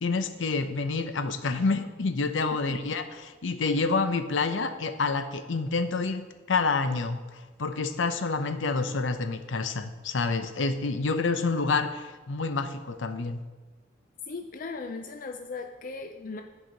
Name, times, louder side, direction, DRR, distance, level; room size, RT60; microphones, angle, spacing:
voice 1, 0.0-7.2 7.6-13.4, left 4 dB, 85° left, 9 dB, 0.7 m, -28 dB
voice 2, 14.3-16.4, left 4 dB, 45° left, 4 dB, 0.4 m, -37 dB
14.5 x 4.9 x 3.9 m, 1.3 s
head